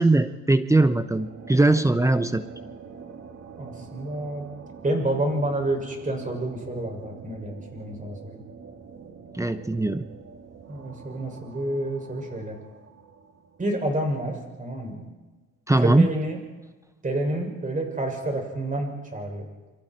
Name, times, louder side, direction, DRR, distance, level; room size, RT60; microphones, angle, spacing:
voice 1, 0.0-2.4 9.3-10.0 15.7-16.1, right 2 dB, 10° right, 11 dB, 0.9 m, -20 dB
sound 1, 0.8-14.0, right 5 dB, 55° right, 2.9 m, -45 dB
voice 2, 3.6-4.4 4.8-8.4 10.7-12.6 13.6-15.0 15.8-16.4 17.0-19.5, right 1 dB, 25° right, 2 dB, 6.8 m, -29 dB
28.5 x 24.0 x 4.6 m, 1.2 s
cardioid pair, 90°, 30 cm